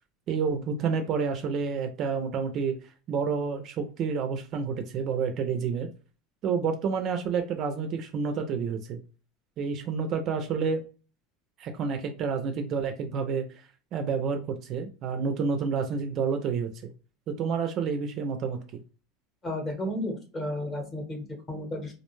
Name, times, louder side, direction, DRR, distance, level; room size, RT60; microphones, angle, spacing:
voice 1, 0.3-2.8 3.1-5.9 6.4-9.0 9.6-10.8 11.6-13.6 13.9-16.7 17.3-18.6, right 5 dB, 35° right, 7 dB, 0.4 m, -29 dB
voice 2, 19.4-21.9, left 1 dB, 20° left, 3 dB, 0.8 m, -33 dB
2.4 x 2.2 x 3.0 m, 0.35 s
supercardioid pair, 160°, 0 cm